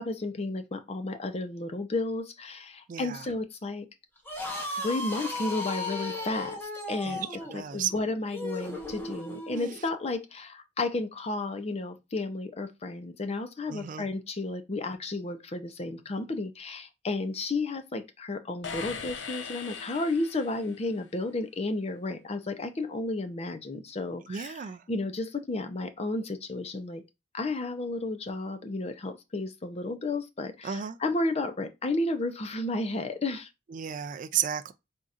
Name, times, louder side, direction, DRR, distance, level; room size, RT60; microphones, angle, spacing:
voice 1, 0.0-3.9 4.7-7.3 7.5-27.0 27.3-33.5, left 2 dB, 35° left, 0.5 m, -32 dB
voice 2, 2.9-3.3 7.0-7.2 7.5-7.9 13.7-14.1 24.3-24.8 30.6-31.0 33.7-34.7, right 9 dB, 45° right, 0.3 m, -33 dB
sound 1, 4.2-9.8, left 2 dB, 10° left, 1.0 m, -36 dB
sound 2, 18.6-20.9, left 6 dB, 80° left, 0.6 m, -39 dB
4.1 x 3.6 x 2.5 m
head